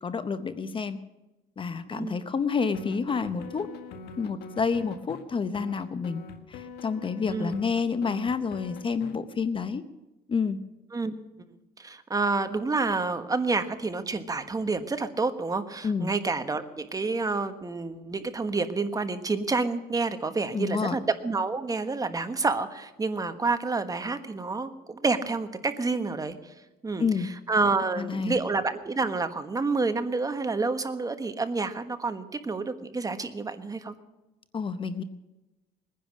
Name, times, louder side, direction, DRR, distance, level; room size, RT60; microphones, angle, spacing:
voice 1, 0.0-1.0 1.6-3.7 4.2-9.8 10.3-10.6 15.8-16.1 20.5-21.0 27.0-27.3 28.0-28.4 34.5-35.0, left 5 dB, 30° left, 12 dB, 0.8 m, -29 dB
sound 1, 2.7-5.2 5.5-9.1, left 4 dB, 75° left, 1.7 m, -43 dB
voice 2, 11.8-26.5 26.8-34.0, right 3 dB, 20° right, 9 dB, 1.3 m, -29 dB
21.0 x 10.5 x 6.4 m, 1.0 s
cardioid pair, 110°, 17 cm